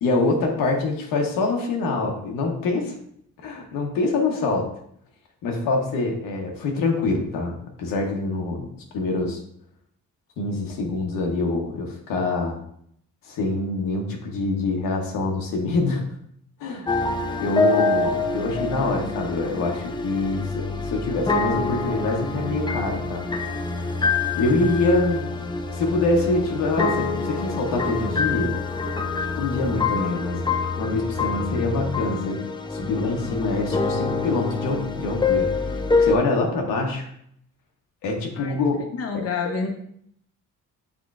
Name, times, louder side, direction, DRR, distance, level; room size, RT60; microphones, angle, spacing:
voice 1, 0.0-3.0 3.4-4.7 5.4-9.4 10.4-12.6 13.2-16.0 16.6-16.9 17.4-23.9 24.4-25.2 25.7-28.5 29.3-32.4 32.7-37.1 38.0-38.8 39.1-39.5, left 3 dB, 85° left, 1 dB, 1.0 m, -25 dB
sound 1, 16.9-36.2, left 3 dB, 15° left, 0.4 m, -26 dB
voice 2, 39.0-39.7, left 5 dB, 45° left, 3 dB, 0.7 m, -28 dB
6.0 x 3.6 x 2.4 m, 0.69 s
cardioid pair, 75°, 33 cm